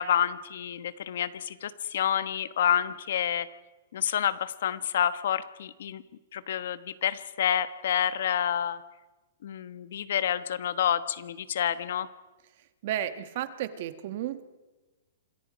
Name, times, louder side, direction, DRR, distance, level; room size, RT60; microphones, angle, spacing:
voice 1, 0.0-3.5 3.9-6.0 6.3-8.8 9.4-12.1, left 9 dB, 55° left, 14 dB, 1.1 m, -28 dB
voice 2, 12.8-14.4, right 11 dB, 40° right, 11 dB, 1.3 m, -33 dB
27.0 x 22.5 x 5.2 m, 1.2 s
hypercardioid pair, 170°, 0 cm